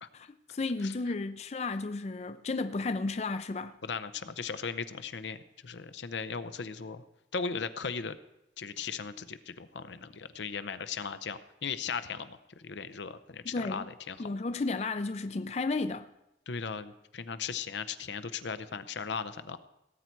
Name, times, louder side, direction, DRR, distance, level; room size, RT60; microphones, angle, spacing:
voice 1, 0.1-3.8 13.5-13.9 14.2-16.1, left 3 dB, 35° left, 0.4 m, -33 dB
voice 2, 3.8-5.4 5.6-7.0 7.3-8.2 8.6-14.2 16.5-19.6, left 5 dB, 80° left, 0.7 m, -37 dB
18.0 x 8.2 x 4.5 m
head